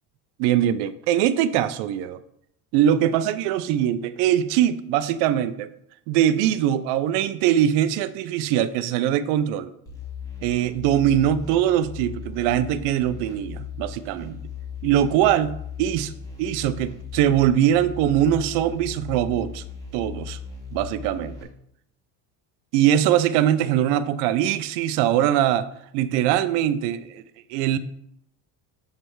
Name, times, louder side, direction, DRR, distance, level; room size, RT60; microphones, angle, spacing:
voice 1, 0.4-2.2 2.7-5.7 6.1-9.7 10.4-14.4 14.8-15.5 15.8-16.1 16.4-19.6 19.9-20.4 20.7-21.4 22.7-25.7 25.9-27.2 27.5-27.8, right 11 dB, 85° right, 14 dB, 0.6 m, -22 dB
sound 1, 9.9-21.4, left 6 dB, 10° left, 1.5 m, -37 dB
8.1 x 3.3 x 4.6 m, 0.73 s
cardioid pair, 140°, 40 cm